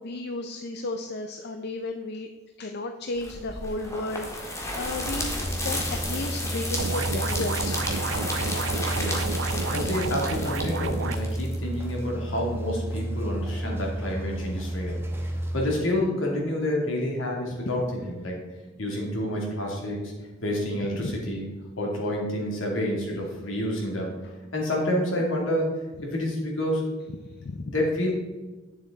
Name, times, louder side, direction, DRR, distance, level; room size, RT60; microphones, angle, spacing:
voice 1, 0.0-2.3 2.6-8.0 21.0-21.1 27.2-27.7, left 2 dB, 55° left, 6 dB, 0.5 m, -34 dB
sound 1, 3.2-12.0, left 1 dB, 15° left, 1.6 m, -33 dB
sound 2, 5.3-15.7, right 1 dB, 10° right, 1.0 m, -32 dB
sound 3, 6.8-11.2, right 4 dB, 70° right, 0.5 m, -31 dB
voice 2, 8.9-9.3 9.7-15.0 15.5-18.3 18.8-20.1 20.4-21.5 21.8-24.1 24.5-25.7 26.0-26.8 27.6-28.1, left 1 dB, 75° left, -2 dB, 2.6 m, -28 dB
9.4 x 7.2 x 3.9 m, 1.2 s
head